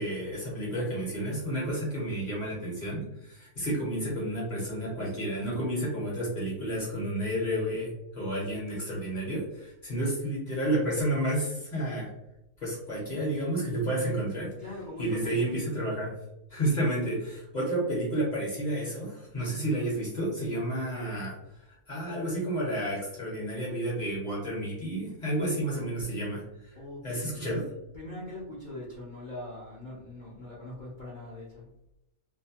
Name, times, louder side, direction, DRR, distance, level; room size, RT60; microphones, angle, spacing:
voice 1, 0.0-12.1 12.6-14.5 15.0-16.1 16.5-21.4 21.9-26.7 27.0-27.6, right 1 dB, 40° left, -5 dB, 0.7 m, -31 dB
voice 2, 14.6-15.6 26.8-27.4 27.9-31.7, left 1 dB, 70° left, -6 dB, 0.4 m, -41 dB
2.6 x 2.1 x 2.7 m, 0.89 s
omnidirectional pair, 1.6 m